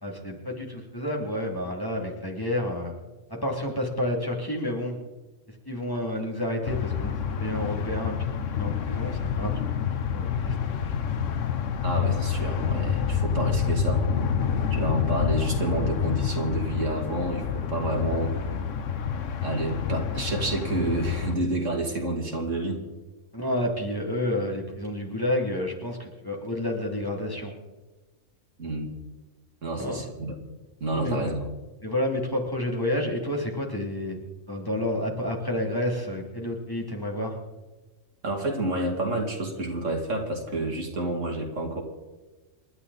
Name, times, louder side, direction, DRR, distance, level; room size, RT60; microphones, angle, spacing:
voice 1, 0.0-2.9 3.4-5.0 5.7-8.1 8.5-9.7 10.1-10.6 23.3-27.5 29.7-30.0 30.9-31.3 31.8-34.2 34.5-37.4, left 1 dB, 15° left, -1 dB, 2.9 m, -30 dB
sound 1, 6.6-21.4, left 7 dB, 75° left, 1.3 m, -28 dB
voice 2, 11.8-14.0 14.7-18.3 19.4-22.8 28.6-28.9 29.6-30.4 30.8-31.4 38.2-41.8, right 2 dB, 70° right, 2 dB, 3.0 m, -29 dB
28.0 x 12.0 x 4.2 m, 1.2 s
omnidirectional pair, 1.3 m